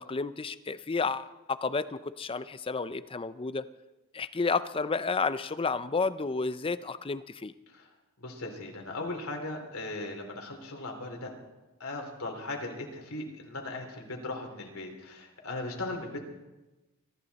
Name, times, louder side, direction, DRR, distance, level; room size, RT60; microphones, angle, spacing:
voice 1, 0.0-3.7 4.1-7.5, left 4 dB, 25° left, 14 dB, 0.5 m, -31 dB
voice 2, 8.2-11.3 11.8-16.2, left 2 dB, 80° left, 2 dB, 3.3 m, -38 dB
24.0 x 14.0 x 4.2 m, 1.1 s
head